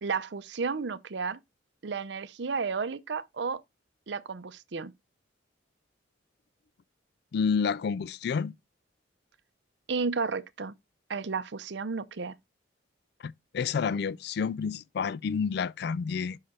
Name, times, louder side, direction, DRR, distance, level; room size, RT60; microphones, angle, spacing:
voice 1, 0.0-1.4 1.8-3.6 4.1-4.9 9.9-10.7 11.1-12.3, right 5 dB, 65° right, 0.6 m, -32 dB
voice 2, 7.3-8.5 13.2-16.4, left 6 dB, 55° left, 0.3 m, -29 dB
6.4 x 5.7 x 4.1 m
head